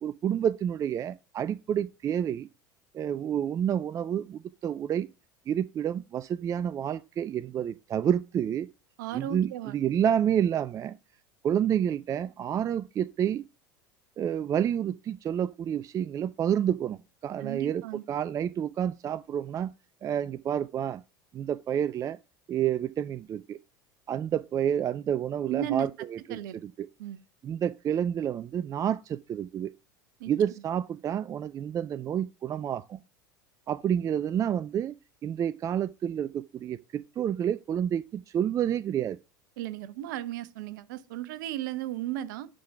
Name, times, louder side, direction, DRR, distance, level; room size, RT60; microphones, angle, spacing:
voice 1, 0.0-2.5 2.9-5.1 5.5-8.7 9.1-11.0 11.4-13.4 14.2-17.8 18.1-19.7 20.0-21.0 21.3-22.2 22.5-23.6 24.1-25.9 26.3-26.9 27.4-29.7 30.3-33.0 33.7-39.2, right 9 dB, 30° right, 0.4 m, -29 dB
voice 2, 9.0-9.7 17.4-18.0 25.5-25.9 26.3-26.6 27.0-27.2 30.2-30.3 39.6-42.5, right 12 dB, 70° right, 0.8 m, -35 dB
11.0 x 3.8 x 5.7 m
hypercardioid pair, 80°, 11 cm